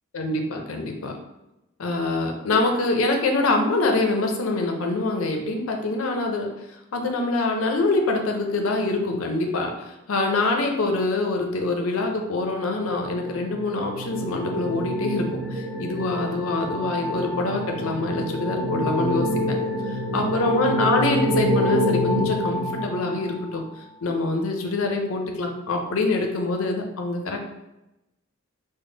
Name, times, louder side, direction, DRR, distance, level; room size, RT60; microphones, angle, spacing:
voice 1, 0.1-1.2 1.8-6.5 6.9-19.6 20.1-23.6 24.0-27.5, left 2 dB, 85° left, 3 dB, 0.5 m, -25 dB
sound 1, 12.8-23.6, equal, 40° right, 0.4 m, -27 dB
3.5 x 2.1 x 3.8 m, 0.95 s
head